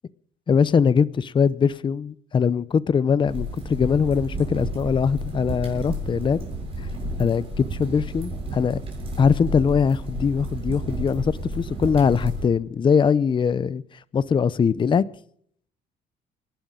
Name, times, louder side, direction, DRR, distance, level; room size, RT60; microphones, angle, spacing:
voice 1, 0.5-6.4 6.8-6.9 7.2-8.8 9.2-15.0, left 6 dB, 30° left, 0.6 m, -22 dB
sound 1, 3.3-12.5, right 1 dB, 35° right, 7.2 m, -31 dB
28.5 x 11.5 x 3.8 m
cardioid pair, 110°, 17 cm